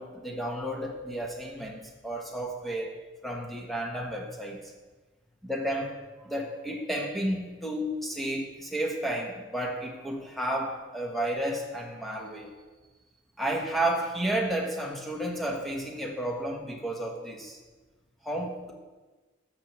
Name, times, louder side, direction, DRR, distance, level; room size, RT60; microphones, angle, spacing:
voice 1, 0.0-4.6 5.4-12.5 13.4-17.6 18.2-18.7, right 1 dB, ahead, 0 dB, 0.9 m, -32 dB
14.0 x 6.0 x 3.0 m, 1.3 s
head